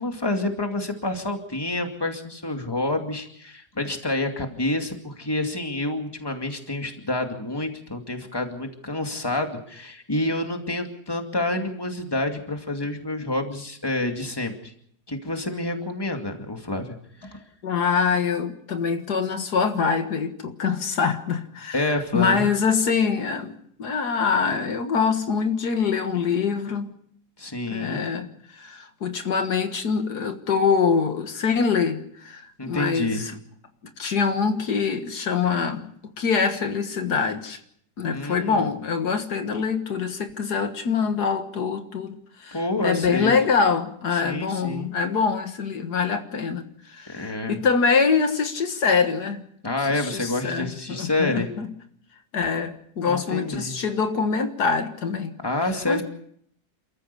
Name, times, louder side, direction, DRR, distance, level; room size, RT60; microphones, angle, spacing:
voice 1, 0.0-14.7 15.1-16.9 17.2-17.4 21.7-22.4 27.4-28.1 32.6-33.2 38.1-38.7 42.5-43.3 44.2-44.9 47.1-47.6 49.6-51.5 53.0-53.8 55.4-56.0, left 2 dB, 15° left, 4 dB, 2.3 m, -28 dB
voice 2, 17.6-26.9 27.7-28.3 28.5-33.3 34.0-37.6 38.0-49.4 49.9-51.7 52.3-55.4 55.9-56.0, left 5 dB, 75° left, 7 dB, 2.1 m, -24 dB
28.5 x 14.5 x 6.9 m, 0.68 s
omnidirectional pair, 1.7 m